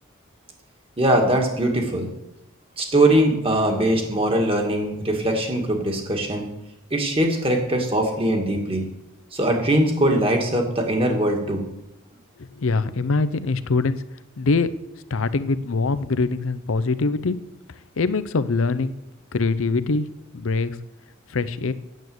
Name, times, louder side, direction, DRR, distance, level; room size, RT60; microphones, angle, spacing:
voice 1, 1.0-2.1 2.8-6.5 6.9-8.8 9.3-11.6, right 1 dB, 25° right, 2 dB, 1.9 m, -21 dB
voice 2, 12.4-14.0 14.4-14.7 15.1-17.4 18.0-18.9 19.3-20.1 20.3-20.8 21.3-21.7, left 3 dB, 70° left, 14 dB, 0.6 m, -23 dB
9.3 x 7.9 x 7.8 m, 0.87 s
head